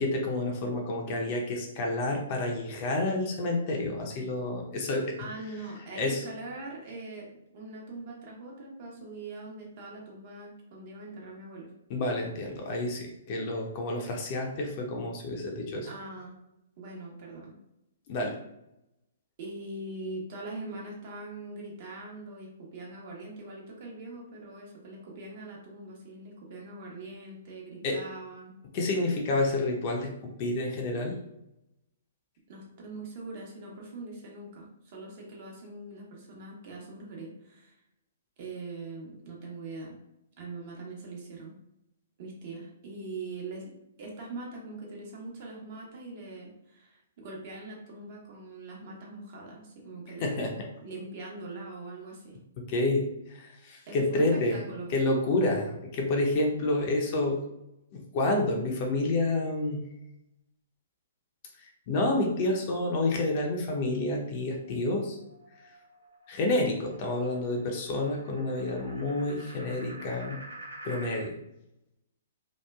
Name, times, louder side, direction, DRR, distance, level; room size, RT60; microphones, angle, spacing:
voice 1, 0.0-5.2 5.9-6.3 11.9-15.9 18.1-18.4 27.8-28.0 28.7-31.2 50.2-50.7 52.6-54.6 54.9-57.4 57.9-59.8 61.6-65.2 66.3-70.4 70.8-71.4, left 2 dB, 40° left, 1 dB, 0.6 m, -29 dB
voice 2, 5.2-7.3 7.5-11.7 15.8-16.3 16.8-17.6 19.4-28.5 32.5-37.7 38.4-40.0 40.4-41.5 42.2-43.7 44.0-50.5 50.8-52.4 53.9-54.9, right 2 dB, 50° right, -2 dB, 0.9 m, -42 dB
sound 1, 64.6-71.3, right 1 dB, 80° right, 0.7 m, -48 dB
3.0 x 2.2 x 2.2 m, 0.86 s
figure-of-eight pair, 125°, 0 cm